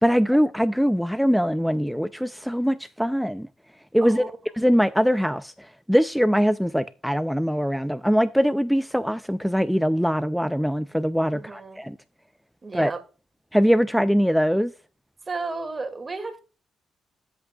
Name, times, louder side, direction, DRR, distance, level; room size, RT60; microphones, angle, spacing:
voice 1, 0.0-3.5 3.9-4.2 4.6-12.0 12.7-12.9 13.5-14.7, equal, ahead, 0.5 m, -22 dB
voice 2, 11.3-11.8 12.6-13.0 15.3-16.4, right 3 dB, 35° right, 2.2 m, -33 dB
11.5 x 8.0 x 2.4 m
hypercardioid pair, 45°, 0 cm